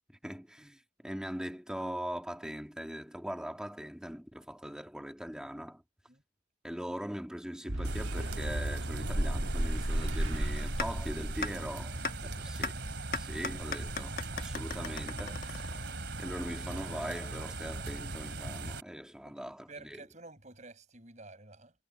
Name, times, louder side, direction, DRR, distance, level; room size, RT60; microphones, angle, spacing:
voice 1, 0.2-5.8 6.6-12.7 13.1-15.8 16.2-20.0, equal, 5° right, 2.1 m, -41 dB
Boom, 7.7-14.2, right 1 dB, 75° right, 1.6 m, -40 dB
sound 1, 7.8-18.8, right 1 dB, 60° right, 3.0 m, -36 dB
sound 2, 10.8-10.9 11.4-11.5 12.0-12.1 12.6-12.7 13.1-16.1, left 4 dB, 45° left, 1.2 m, -36 dB
voice 2, 12.2-12.5 19.2-19.3 19.7-21.7, right 3 dB, 35° right, 6.3 m, -51 dB
head